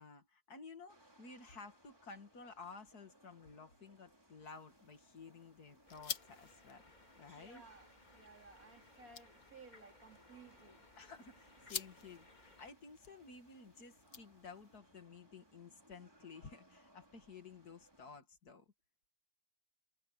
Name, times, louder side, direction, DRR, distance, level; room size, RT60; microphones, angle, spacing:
voice 1, 0.0-6.8 7.2-7.6 11.0-18.6, left 4 dB, 85° left, 2.8 m, -54 dB
sound 1, 0.9-18.2, right 1 dB, 15° right, 3.7 m, -68 dB
sound 2, 4.4-14.8, left 7 dB, 55° left, 1.6 m, -52 dB
sound 3, 5.9-12.7, left 2 dB, 30° left, 2.8 m, -64 dB
voice 2, 7.4-10.9, right 3 dB, 65° right, 3.2 m, -59 dB
omnidirectional pair, 1.6 m